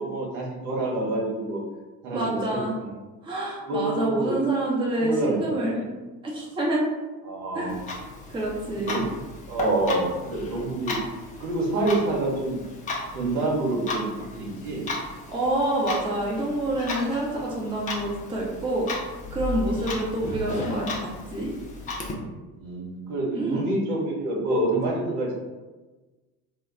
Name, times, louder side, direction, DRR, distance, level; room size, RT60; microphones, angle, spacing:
voice 1, 0.0-1.6 2.0-2.9 3.6-4.4 4.9-5.9 7.2-7.7 8.7-9.0 9.5-10.9 11.4-12.6 13.1-14.8 19.9-20.0 22.5-25.3, right 2 dB, 65° right, -3 dB, 0.9 m, -27 dB
voice 2, 2.1-2.7 3.2-5.8 6.2-6.9 7.5-7.7 8.3-9.0 15.3-18.9 19.3-21.5 23.3-23.7, right 1 dB, 10° right, -4 dB, 0.7 m, -27 dB
Clock, 7.7-22.1, left 2 dB, 20° left, 0.3 m, -35 dB
2.2 x 2.1 x 3.6 m, 1.2 s
figure-of-eight pair, 65°, 48 cm